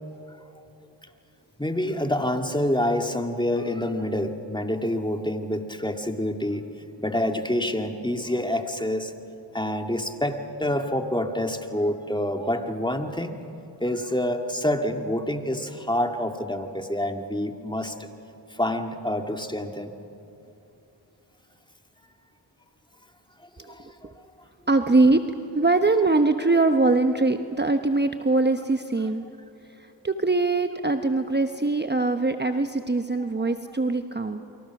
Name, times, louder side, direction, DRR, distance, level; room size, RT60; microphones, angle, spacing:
voice 1, 1.6-6.7 7.0-9.1 9.5-13.4 13.8-18.1 18.5-19.9 23.7-24.1, left 1 dB, 10° left, 5 dB, 2.1 m, -27 dB
voice 2, 24.7-25.2 25.5-29.2 29.8-34.4, right 3 dB, 25° right, 7 dB, 1.1 m, -22 dB
29.0 x 24.0 x 6.1 m, 2.9 s
cardioid pair, 45°, 45 cm